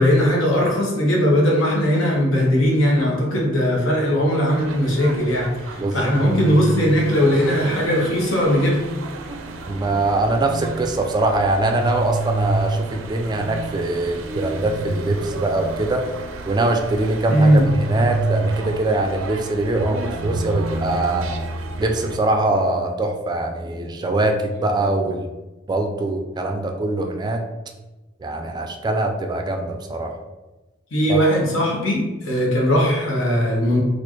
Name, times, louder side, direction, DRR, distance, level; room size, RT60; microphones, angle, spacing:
voice 1, 0.0-8.8 17.3-17.7 30.9-33.8, equal, 85° left, -2 dB, 1.0 m, -19 dB
sound 1, 4.5-22.2, right 2 dB, 90° right, 0.4 m, -29 dB
voice 2, 5.8-6.2 9.3-16.0 16.5-21.3 21.8-25.3 25.7-27.4 28.2-30.2 31.1-31.2, right 2 dB, 20° right, 4 dB, 0.3 m, -23 dB
4.1 x 2.4 x 3.0 m, 1.1 s
head